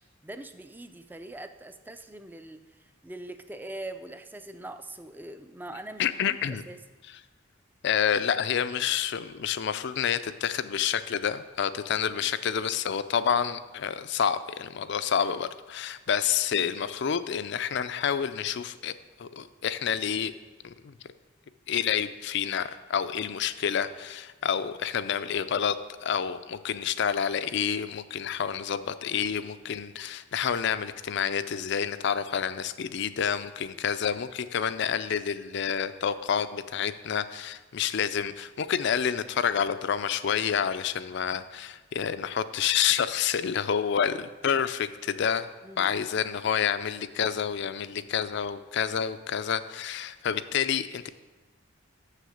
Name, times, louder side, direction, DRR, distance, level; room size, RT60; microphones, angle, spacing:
voice 1, 0.2-2.6 3.0-6.8 33.7-33.8 45.6-46.1, right 1 dB, 10° right, 9 dB, 0.4 m, -42 dB
voice 2, 6.0-6.6 7.8-18.9 19.2-20.3 20.6-20.9 21.7-45.5 45.8-51.1, left 8 dB, 60° left, 13 dB, 0.4 m, -28 dB
7.0 x 6.6 x 6.3 m, 1.3 s
head